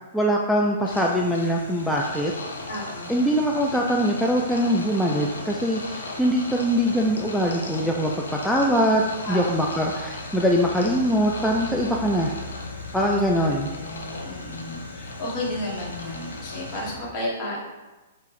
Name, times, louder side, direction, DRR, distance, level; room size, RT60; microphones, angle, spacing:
voice 1, 0.1-2.3 3.1-12.3 12.9-13.7, equal, 5° left, -2 dB, 0.3 m, -22 dB
sound 1, 0.8-17.0, left 2 dB, 75° left, 0.6 m, -36 dB
voice 2, 2.7-3.2 9.2-9.6 12.9-13.2 13.7-17.6, left 1 dB, 35° left, -5 dB, 1.4 m, -33 dB
4.4 x 2.4 x 3.5 m, 1.1 s
figure-of-eight pair, 115°, 0 cm